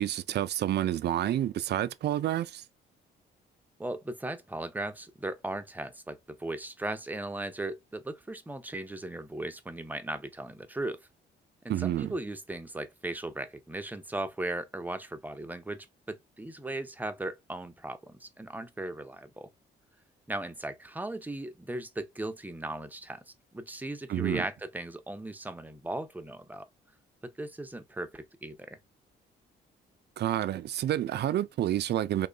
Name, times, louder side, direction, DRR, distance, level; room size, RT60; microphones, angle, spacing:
voice 1, 0.0-2.6 11.7-12.1 24.1-24.4 30.2-32.3, right 12 dB, 55° right, 0.4 m, -29 dB
voice 2, 3.8-11.0 11.6-19.5 20.3-23.2 23.5-26.7 27.2-28.8, right 2 dB, 10° right, 0.5 m, -37 dB
3.0 x 2.2 x 3.8 m
cardioid pair, 90°, 20 cm